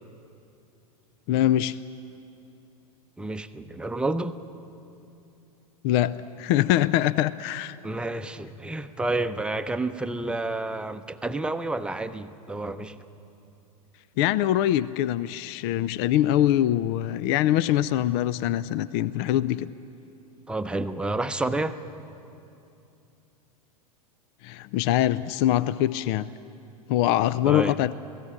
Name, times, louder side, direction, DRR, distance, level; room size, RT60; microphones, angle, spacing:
voice 1, 1.3-1.8 5.8-7.8 14.2-19.7 24.4-26.3 26.9-27.9, left 12 dB, 40° left, 18 dB, 0.5 m, -23 dB
voice 2, 3.2-4.4 7.8-13.0 20.5-21.8 27.5-27.8, right 2 dB, 5° right, 9 dB, 0.8 m, -30 dB
27.5 x 18.0 x 8.8 m, 2.8 s
figure-of-eight pair, 95°, 19 cm